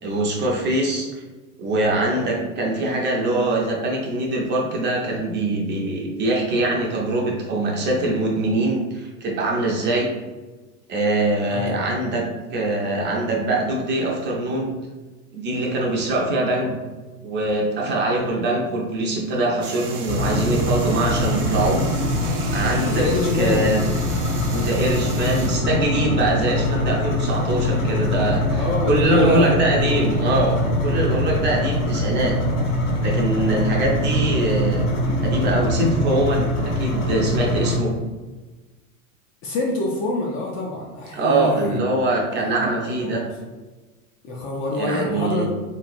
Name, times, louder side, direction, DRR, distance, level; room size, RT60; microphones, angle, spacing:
voice 1, 0.0-1.1 1.6-10.1 10.9-12.3 12.5-14.7 15.3-16.7 17.2-21.8 22.5-23.1 23.4-23.8 24.5-30.6 30.8-32.3 33.0-34.9 35.2-36.5 36.8-37.9 41.1-43.2 44.8-45.5, right 2 dB, 25° right, -2 dB, 0.5 m, -23 dB
voice 2, 11.5-11.9 22.8-23.7 28.5-29.5 39.4-41.8 42.4-42.7 43.0-43.3 44.2-45.5, left 1 dB, 30° left, -1 dB, 0.4 m, -25 dB
sound 1, 19.6-25.6, right 6 dB, 75° right, 0.7 m, -37 dB
sound 2, 20.1-37.8, left 1 dB, 65° left, 1.3 m, -23 dB
3.1 x 3.0 x 2.5 m, 1.2 s
hypercardioid pair, 120°, 44 cm